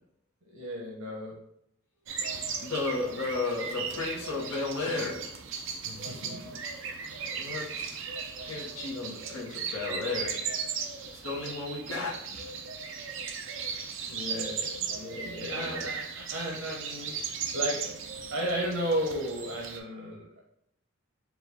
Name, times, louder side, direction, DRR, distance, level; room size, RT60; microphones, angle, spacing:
voice 1, 0.4-1.4 5.8-6.6 14.1-18.0 18.3-20.4, equal, 90° right, -3 dB, 0.8 m, -34 dB
sound 1, 2.1-19.8, right 6 dB, 65° right, 0.5 m, -37 dB
voice 2, 2.6-5.3 7.3-8.0 8.4-10.4 11.2-12.3 15.1-15.9, left 3 dB, 85° left, -5 dB, 1.0 m, -34 dB
4.6 x 2.3 x 3.5 m, 0.75 s
head